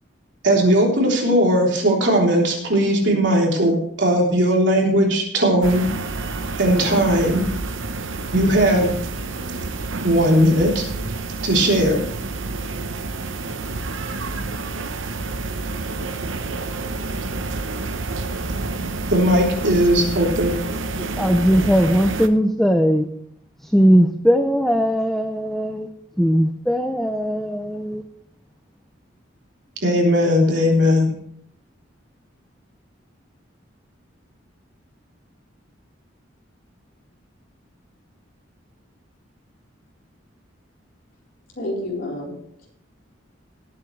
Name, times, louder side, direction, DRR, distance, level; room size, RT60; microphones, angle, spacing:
voice 1, 0.4-5.8 6.6-7.4 8.3-8.9 10.0-10.8 11.4-12.0 19.1-20.6 29.8-31.1, equal, 65° right, -1 dB, 3.5 m, -18 dB
sound 1, 5.6-22.3, right 3 dB, 90° right, 1.0 m, -29 dB
voice 2, 21.0-23.1 23.6-25.9 26.2-28.0, equal, ahead, 6 dB, 0.6 m, -19 dB
voice 3, 41.6-42.7, left 1 dB, 50° left, -3 dB, 4.2 m, -30 dB
19.5 x 8.6 x 3.3 m, 0.68 s
head